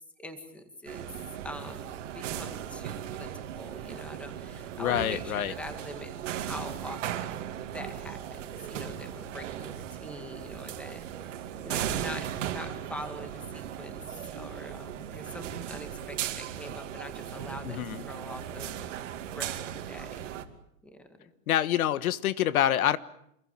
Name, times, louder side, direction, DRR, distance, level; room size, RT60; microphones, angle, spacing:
voice 1, 0.2-1.1 1.4-7.5 7.7-14.0 14.3-17.8 18.1-19.0 19.3-20.3 21.2-21.3, left 1 dB, 5° left, 7 dB, 2.0 m, -43 dB
sound 1, 0.9-20.4, right 10 dB, 60° right, 2.6 m, -37 dB
voice 2, 4.8-5.5 17.6-18.0 21.5-23.0, left 11 dB, 80° left, 15 dB, 1.4 m, -26 dB
28.0 x 21.5 x 9.0 m, 0.77 s
supercardioid pair, 180°, 42 cm